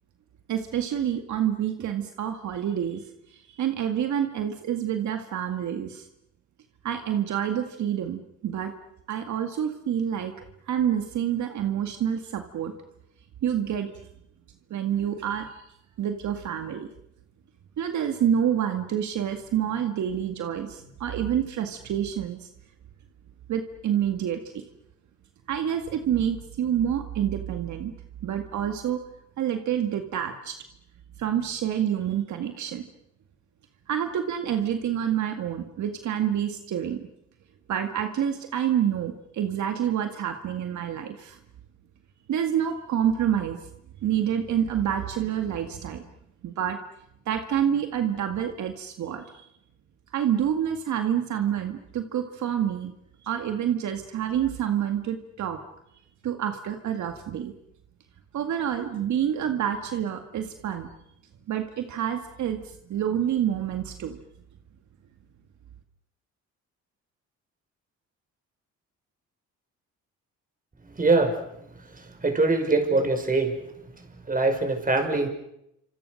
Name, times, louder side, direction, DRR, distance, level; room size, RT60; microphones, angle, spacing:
voice 1, 0.5-3.0 3.3-6.1 6.8-8.7 9.1-10.3 10.7-12.7 13.4-13.9 14.7-15.6 16.0-16.9 17.8-22.5 23.5-24.6 25.5-27.9 28.2-29.0 29.4-30.6 31.2-32.9 33.9-37.1 37.7-41.4 42.3-43.6 44.0-46.0 46.4-46.8 47.3-49.5 50.1-52.9 53.2-55.6 56.2-57.5 58.3-60.9 61.5-62.6 62.9-64.2, right 9 dB, 70° right, 6 dB, 2.0 m, -27 dB
voice 2, 71.0-71.4 72.2-73.6 74.3-75.3, right 3 dB, 30° right, 5 dB, 5.7 m, -22 dB
28.5 x 26.5 x 6.5 m, 0.80 s
cardioid pair, 90°, 30 cm